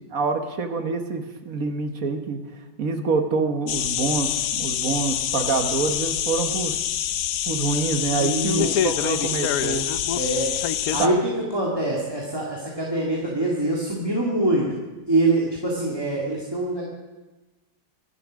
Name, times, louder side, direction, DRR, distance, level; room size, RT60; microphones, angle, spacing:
voice 1, 0.1-2.4 2.8-6.8 7.5-9.9 11.0-11.1, right 4 dB, 50° right, 7 dB, 1.5 m, -26 dB
sound 1, 3.7-11.1, left 10 dB, 65° left, 1.0 m, -26 dB
voice 2, 8.2-8.7 10.1-10.5 10.9-14.8 15.1-16.8, right 2 dB, 15° right, -3 dB, 2.1 m, -24 dB
24.5 x 8.3 x 6.3 m, 1.1 s
omnidirectional pair, 2.0 m